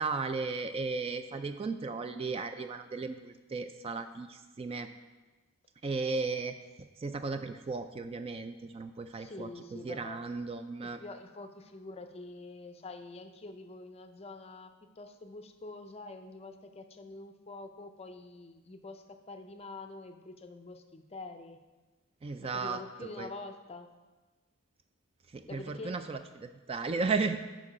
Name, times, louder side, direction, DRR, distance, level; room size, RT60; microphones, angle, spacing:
voice 1, 0.0-4.9 5.8-6.5 7.0-11.0 22.2-23.3 25.3-27.4, right 4 dB, 25° right, 9 dB, 0.3 m, -35 dB
voice 2, 9.1-10.2 11.0-21.6 22.5-23.9 25.5-26.0, left 2 dB, 30° left, 8 dB, 0.5 m, -46 dB
8.5 x 5.3 x 5.0 m, 1.2 s
head